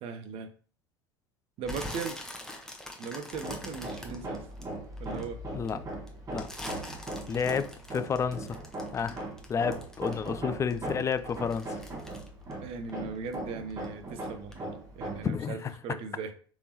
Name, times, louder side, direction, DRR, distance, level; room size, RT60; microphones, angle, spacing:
voice 1, 0.0-0.5 1.6-2.2 3.0-4.4 5.0-5.4 12.6-16.3, right 5 dB, 45° right, 0.7 m, -38 dB
sound 1, 1.6-5.2 5.7-10.4 10.7-13.4 13.7-14.1 14.5-14.6, left 1 dB, 5° left, 0.9 m, -43 dB
Hammer, 3.3-15.4, right 1 dB, 25° right, 1.4 m, -39 dB
voice 2, 7.3-8.6 8.9-9.2 9.5-11.7 15.2-15.7, left 6 dB, 25° left, 0.4 m, -30 dB
4.5 x 3.4 x 2.8 m
figure-of-eight pair, 75°, 13 cm